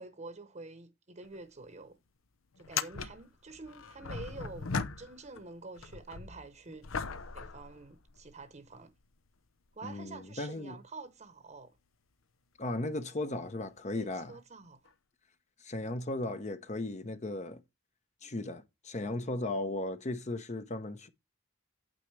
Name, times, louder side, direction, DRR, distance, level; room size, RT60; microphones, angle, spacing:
voice 1, 0.0-2.0 2.6-6.9 7.3-8.9 9.7-11.8 13.9-14.9, right 3 dB, 35° right, 0.9 m, -48 dB
sound 1, 1.2-1.4 1.7-1.8 2.6-5.4 5.8-8.4 9.1-9.2 13.4-13.5 14.9-15.0, left 5 dB, 85° left, 0.8 m, -39 dB
voice 2, 9.8-10.8 12.6-14.4 15.6-17.6 18.2-21.1, left 2 dB, 35° left, 0.8 m, -36 dB
9.1 x 8.1 x 3.2 m
head